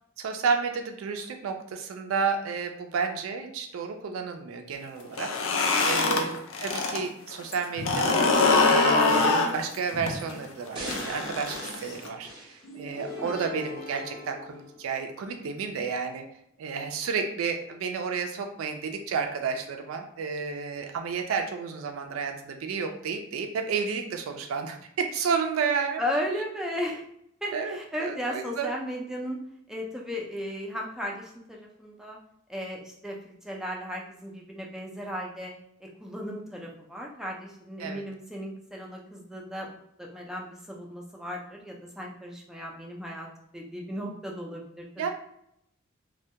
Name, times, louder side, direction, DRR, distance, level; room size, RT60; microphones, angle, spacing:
voice 1, 0.2-5.3 5.8-8.3 8.7-16.2 16.6-26.0 27.5-28.7 37.8-38.0 45.0-45.1, right 5 dB, 85° right, 5 dB, 0.3 m, -31 dB
sound 1, 5.0-7.0 7.3-12.1, left 3 dB, 75° left, 0.4 m, -24 dB
sound 2, 10.7-13.2 13.7-13.8, right 1 dB, 25° right, 0.7 m, -42 dB
sound 3, 12.6-15.5, left 3 dB, 50° left, 0.7 m, -41 dB
voice 2, 26.0-27.0 27.4-29.4 29.7-32.2 32.5-35.5 35.8-39.7 40.0-43.3 43.5-45.1, equal, ahead, -2 dB, 0.3 m, -35 dB
2.2 x 2.1 x 2.7 m, 0.74 s
head